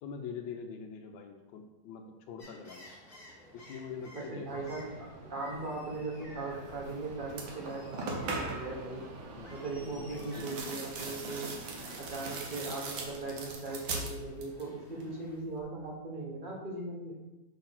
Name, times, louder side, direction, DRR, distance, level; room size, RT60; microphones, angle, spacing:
voice 1, 0.0-2.9 3.5-4.7 9.3-9.5 9.8-10.5, left 6 dB, 85° left, 4 dB, 1.4 m, -44 dB
sound 1, 2.4-15.4, left 1 dB, 30° left, 1.7 m, -55 dB
voice 2, 4.1-9.0 9.5-11.5 12.0-17.1, right 3 dB, 30° right, -2 dB, 1.4 m, -39 dB
Fixed-wing aircraft airplane, 4.5-13.5, right 2 dB, 50° right, 0.9 m, -49 dB
sound 2, 6.8-7.0 7.3-8.8 10.1-14.7 15.0-15.6, right 3 dB, 85° right, 1.8 m, -40 dB
6.3 x 3.9 x 5.9 m, 1.0 s
omnidirectional pair, 2.1 m